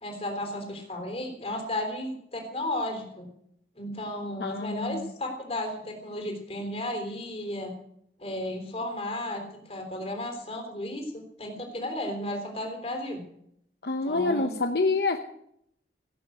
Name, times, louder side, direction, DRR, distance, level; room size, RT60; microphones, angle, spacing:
voice 1, 0.0-3.3 3.8-7.7 8.2-9.4 9.7-13.2 14.1-14.5, left 1 dB, 35° left, 3 dB, 3.6 m, -34 dB
voice 2, 4.4-5.1 13.8-15.2, left 3 dB, 60° left, 6 dB, 0.9 m, -27 dB
17.5 x 8.5 x 7.9 m, 0.73 s
head